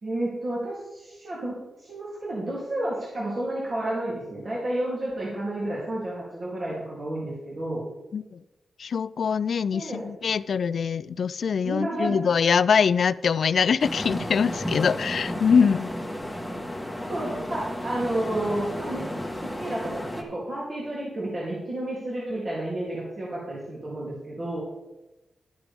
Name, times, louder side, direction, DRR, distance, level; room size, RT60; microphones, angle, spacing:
voice 1, 0.0-7.8 9.7-10.0 11.6-12.2 17.1-19.1 19.4-24.6, right 1 dB, 40° right, -7 dB, 3.0 m, -31 dB
voice 2, 8.8-15.9, left 6 dB, 60° left, 16 dB, 0.3 m, -23 dB
sound 1, 13.8-20.2, equal, ahead, 1.5 m, -33 dB
12.0 x 9.8 x 3.5 m, 1.0 s
wide cardioid pair, 140°, 0 cm